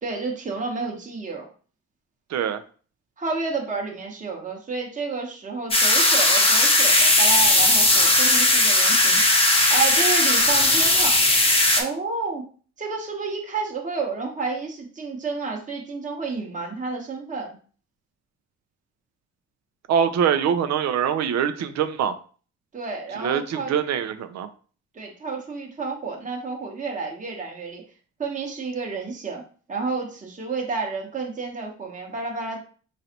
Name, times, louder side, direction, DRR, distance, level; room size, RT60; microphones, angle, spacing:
voice 1, 0.0-1.4 3.2-9.2 9.7-11.2 11.8-12.4 12.8-17.6 22.7-23.7 24.9-27.8 28.2-29.4 29.7-32.6, right 4 dB, 25° right, 0 dB, 1.0 m, -30 dB
voice 2, 2.3-2.6 19.9-22.1 23.2-24.5, right 8 dB, 60° right, 9 dB, 0.5 m, -23 dB
sound 1, 5.7-11.8, left 2 dB, 20° left, 0.8 m, -18 dB
4.0 x 3.1 x 2.8 m, 0.41 s
cardioid pair, 90°, 30 cm